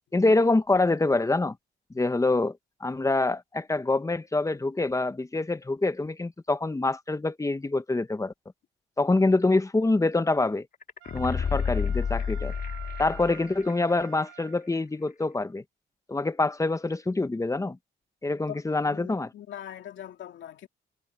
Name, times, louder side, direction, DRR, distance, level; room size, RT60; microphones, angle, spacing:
voice 1, 0.1-1.5 1.9-2.5 2.8-8.3 9.0-10.7 11.1-12.5 13.0-15.6 16.1-17.8 18.2-19.3, left 2 dB, 15° left, 1.2 m, -25 dB
sound 1, 10.8-13.7 14.0-14.1, left 6 dB, 45° left, 2.0 m, -30 dB
Wind instrument woodwind instrument, 11.0-14.8, right 15 dB, 90° right, 6.8 m, -48 dB
voice 2, 18.9-20.7, left 10 dB, 70° left, 2.5 m, -41 dB
cardioid pair, 90°, 20 cm